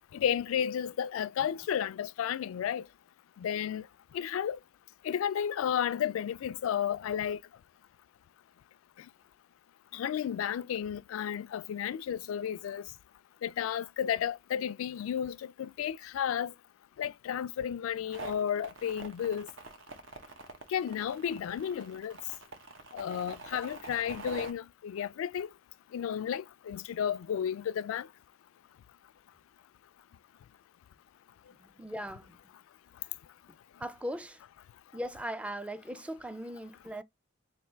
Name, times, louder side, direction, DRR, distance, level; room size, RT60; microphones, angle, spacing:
voice 1, 0.1-2.8 3.4-3.8 4.1-4.6 5.0-7.4 9.9-12.8 13.4-16.5 17.0-19.5 20.7-22.1 22.9-25.5 25.9-28.1, left 9 dB, 85° left, 0.3 m, -32 dB
sound 1, 18.1-24.5, right 3 dB, 70° right, 0.9 m, -45 dB
voice 2, 31.6-32.4 33.8-34.4 34.9-37.0, equal, 5° right, 0.4 m, -39 dB
3.4 x 2.5 x 4.3 m
head